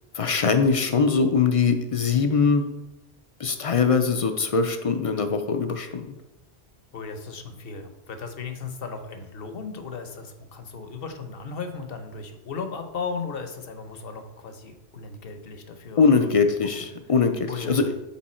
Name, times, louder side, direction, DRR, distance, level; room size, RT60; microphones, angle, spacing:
voice 1, 0.1-2.6 3.4-6.1 16.0-17.9, left 5 dB, 45° left, 7 dB, 0.4 m, -22 dB
voice 2, 6.9-16.3 17.5-17.9, left 5 dB, 60° left, 7 dB, 1.0 m, -36 dB
7.2 x 4.6 x 4.3 m, 0.99 s
omnidirectional pair, 1.1 m